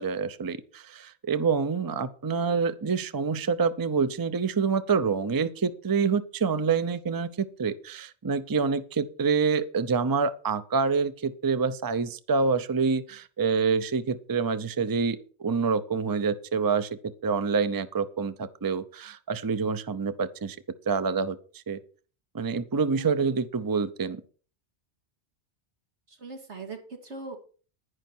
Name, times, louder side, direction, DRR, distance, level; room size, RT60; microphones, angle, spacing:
voice 1, 0.0-20.6 20.9-21.8 22.3-24.2, right 5 dB, 25° right, 12 dB, 0.6 m, -27 dB
voice 2, 22.9-23.3 26.1-27.4, right 3 dB, 85° right, 3 dB, 2.6 m, -41 dB
11.0 x 10.5 x 4.4 m, 0.39 s
omnidirectional pair, 1.1 m